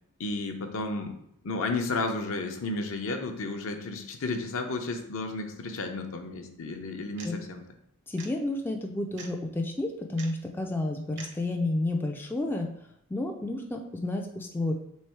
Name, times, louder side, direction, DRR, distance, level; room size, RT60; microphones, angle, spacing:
voice 1, 0.2-1.2 1.4-7.6, left 3 dB, 65° left, 5 dB, 0.6 m, -32 dB
sound 1, 7.2-7.3 8.2-8.3 9.2-9.3 10.2-10.3 11.2-11.3, right 5 dB, 55° right, 0.7 m, -43 dB
voice 2, 8.1-12.7 13.1-14.7, left 2 dB, 10° left, 2 dB, 0.3 m, -31 dB
3.5 x 3.2 x 4.5 m, 0.75 s
head